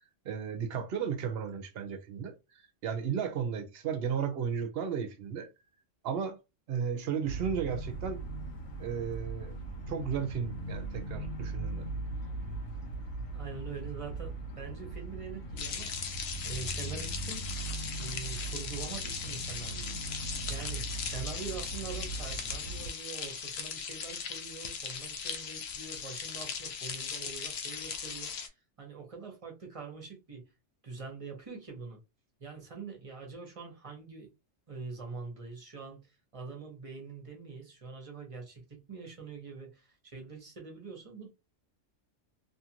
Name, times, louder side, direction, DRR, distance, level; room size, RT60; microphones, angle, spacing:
voice 1, 0.2-2.3 2.8-5.5 6.0-6.4 6.7-8.2 8.8-9.5 9.9-11.9, right 7 dB, 60° right, 0.8 m, -34 dB
sound 1, 7.2-22.9, right 3 dB, 80° left, 1.2 m, -39 dB
voice 2, 13.3-17.4 18.0-19.9 20.5-30.4 30.8-32.0 32.4-34.3 34.7-41.3, right 4 dB, 30° right, 0.9 m, -44 dB
sound 2, 15.6-28.5, left 6 dB, 65° left, 0.8 m, -38 dB
2.7 x 2.5 x 2.8 m
omnidirectional pair, 1.3 m